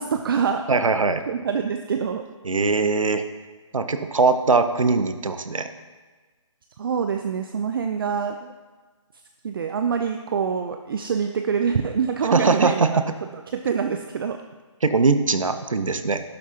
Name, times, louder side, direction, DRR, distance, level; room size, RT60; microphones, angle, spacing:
voice 1, 0.0-0.7 1.3-2.2 6.8-8.5 9.4-13.0 13.5-14.4, right 6 dB, 45° right, 6 dB, 0.5 m, -25 dB
voice 2, 0.7-1.2 2.4-3.2 3.7-5.7 12.3-13.0 14.8-16.2, right 4 dB, 80° right, 10 dB, 0.9 m, -21 dB
11.5 x 10.5 x 2.9 m, 1.3 s
figure-of-eight pair, 150°, 17 cm